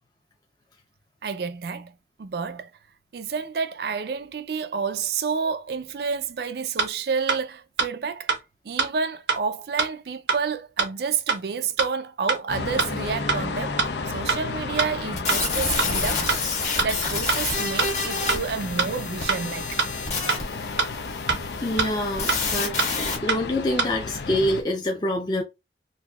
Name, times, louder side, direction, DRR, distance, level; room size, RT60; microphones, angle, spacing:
voice 1, 1.2-1.9 2.2-2.7 3.1-8.3 8.6-13.8 14.1-16.3 16.8-19.8, right 5 dB, 60° right, 0.4 m, -29 dB
sound 1, 6.8-6.9 7.3-7.4 7.8-7.9 8.3-8.4 8.8-8.9 9.3-9.4 9.8-9.9 10.3-10.4 10.8-10.9 11.3-11.4 11.8-11.9 12.3-12.4 12.8-12.9 13.3-13.4 13.8-13.9 14.3-14.4 14.8-14.9 15.3-15.4 15.8-15.9 16.3-16.4 16.8-16.9 17.3-17.4 17.8-17.9 18.3-18.4 18.8-18.9 19.3-19.4 19.8-19.9 20.3-20.4 20.8-20.9 21.3-21.4 21.8-21.9 22.3-22.4 22.8-22.9 23.3-23.4 23.8-23.9, right 5 dB, 90° right, 0.9 m, -23 dB
sound 2, 12.5-24.6, left 4 dB, 75° left, 0.5 m, -33 dB
sound 3, 15.2-23.2, left 4 dB, 40° left, 1.3 m, -29 dB
voice 2, 21.6-22.7 23.2-25.4, left 1 dB, 25° left, 0.6 m, -25 dB
4.0 x 2.6 x 2.3 m
head